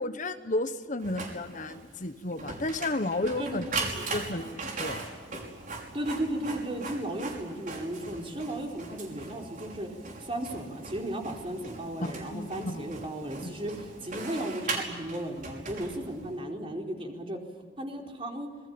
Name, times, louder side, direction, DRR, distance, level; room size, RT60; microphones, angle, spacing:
voice 1, 0.0-3.6 4.1-5.1 12.0-12.9 13.4-13.5, left 2 dB, 45° left, 9 dB, 1.2 m, -32 dB
Printer, 1.0-16.4, right 3 dB, 45° right, 5.7 m, -39 dB
voice 2, 3.4-4.0 5.9-9.9 10.2-17.4 17.8-18.5, right 1 dB, 30° right, 1 dB, 4.6 m, -35 dB
27.0 x 22.5 x 8.7 m, 1.5 s
head